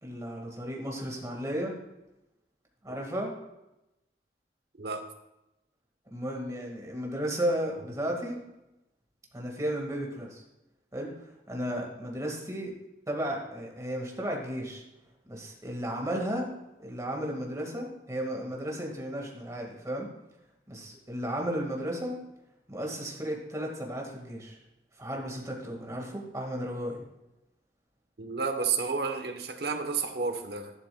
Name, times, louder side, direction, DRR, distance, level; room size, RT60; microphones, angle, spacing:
voice 1, 0.0-1.8 2.8-3.3 6.1-8.4 9.3-10.4 10.9-11.1 11.5-12.7 13.1-14.8 15.2-16.5 16.8-20.1 20.7-22.1 22.7-24.6 25.0-27.0, equal, 20° right, 0 dB, 1.8 m, -34 dB
voice 2, 28.2-30.7, right 5 dB, 60° right, 6 dB, 1.0 m, -31 dB
12.0 x 11.0 x 2.3 m, 0.92 s
head